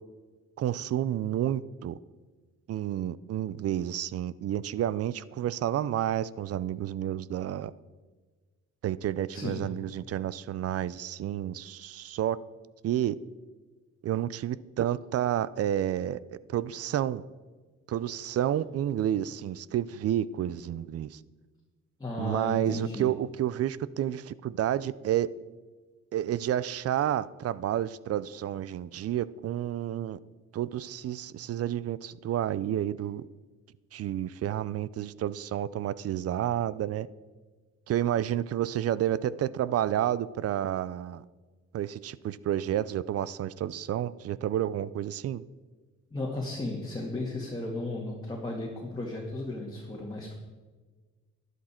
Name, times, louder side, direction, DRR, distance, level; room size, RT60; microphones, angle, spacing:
voice 1, 0.6-2.0 2.7-7.7 8.8-12.4 12.8-13.2 14.0-16.2 16.5-17.2 17.9-21.2 22.2-25.3 26.1-30.2 30.5-33.2 33.9-37.1 37.9-41.2 41.7-45.4, right 11 dB, 55° right, 19 dB, 0.5 m, -30 dB
voice 2, 9.3-9.6 22.0-23.1 46.1-50.3, left 2 dB, 15° left, -3 dB, 2.0 m, -35 dB
11.5 x 11.0 x 4.4 m, 1.4 s
cardioid pair, 90°, 30 cm